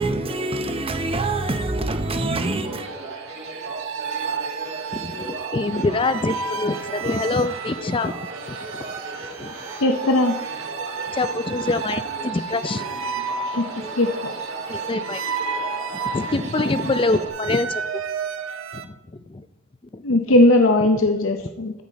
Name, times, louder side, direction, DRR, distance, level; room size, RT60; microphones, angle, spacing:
voice 1, 0.0-2.9, right 2 dB, 30° right, 0.8 m, -25 dB
sound 1, 2.6-17.3, right 2 dB, 60° right, 2.3 m, -37 dB
sound 2, 2.9-18.9, right 5 dB, 80° right, 0.7 m, -32 dB
voice 2, 4.9-8.2 8.5-8.8 9.4-9.5 11.1-12.8 14.7-15.2 16.1-17.8 18.7-19.5 19.9-20.0, left 3 dB, 25° left, 0.4 m, -25 dB
voice 3, 9.8-10.4 13.5-13.7 14.0-14.3 20.0-21.7, left 2 dB, 70° left, 0.7 m, -18 dB
13.5 x 5.7 x 4.1 m
head